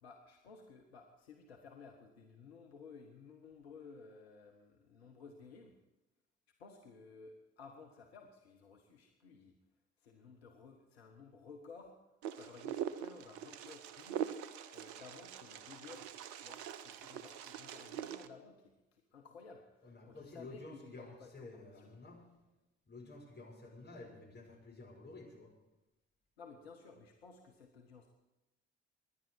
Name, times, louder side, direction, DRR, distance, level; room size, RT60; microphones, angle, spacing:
voice 1, 0.0-5.7 6.6-9.6 10.0-12.1 12.4-14.4 14.7-21.9 26.4-28.1, left 4 dB, 85° left, 2 dB, 1.1 m, -56 dB
Wind, 12.2-18.3, right 9 dB, 65° right, 0.8 m, -43 dB
voice 2, 19.8-22.2 22.9-25.5, left 2 dB, 35° left, -1 dB, 5.5 m, -52 dB
23.5 x 10.5 x 4.6 m, 0.99 s
figure-of-eight pair, 45°, 31 cm